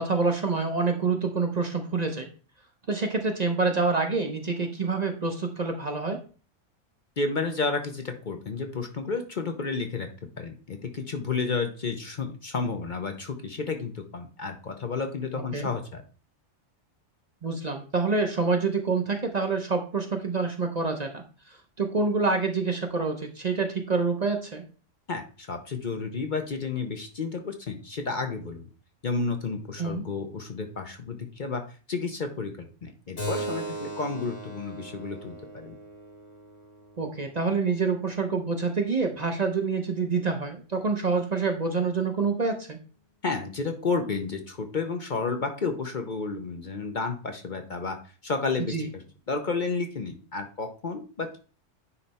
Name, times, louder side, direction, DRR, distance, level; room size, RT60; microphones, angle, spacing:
voice 1, 0.0-2.3 2.9-6.2 15.5-15.7 17.4-21.2 21.8-24.6 29.8-30.0 37.0-42.8 48.6-48.9, right 4 dB, 40° right, 4 dB, 0.8 m, -27 dB
voice 2, 7.2-10.1 10.4-16.0 25.1-28.7 29.0-31.6 31.9-35.7 43.2-48.0 48.2-49.0 49.3-51.4, left 4 dB, 45° left, 5 dB, 0.8 m, -31 dB
Keyboard (musical), 33.2-38.3, right 1 dB, 70° left, 2.5 m, -38 dB
9.7 x 3.3 x 4.2 m, 0.38 s
omnidirectional pair, 1.3 m